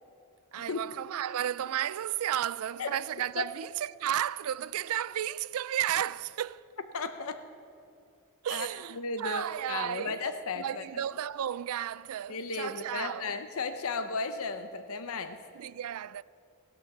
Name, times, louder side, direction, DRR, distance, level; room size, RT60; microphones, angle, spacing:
voice 1, 0.5-6.7 8.4-10.3 10.6-13.4 15.5-16.2, right 10 dB, 70° right, 0.3 m, -33 dB
voice 2, 6.9-7.4 8.5-8.7 9.0-9.4 9.7-10.8 12.3-15.4, left 4 dB, 65° left, 0.7 m, -34 dB
15.0 x 11.5 x 7.1 m
head